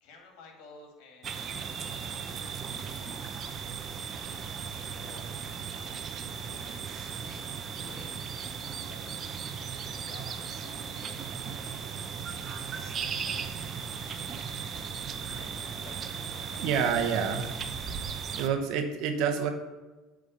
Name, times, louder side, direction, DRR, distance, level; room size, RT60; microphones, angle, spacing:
voice 1, 0.0-3.2 3.6-9.4 10.0-13.7 15.2-16.0 16.5-17.0, left 3 dB, 65° left, 2 dB, 2.2 m, -55 dB
sound 1, 1.2-18.5, right 6 dB, 40° right, 0.8 m, -37 dB
voice 2, 16.6-17.5 18.4-19.5, right 7 dB, 60° right, 5 dB, 1.1 m, -28 dB
8.5 x 3.8 x 6.7 m, 1.2 s
hypercardioid pair, 70°, 0 cm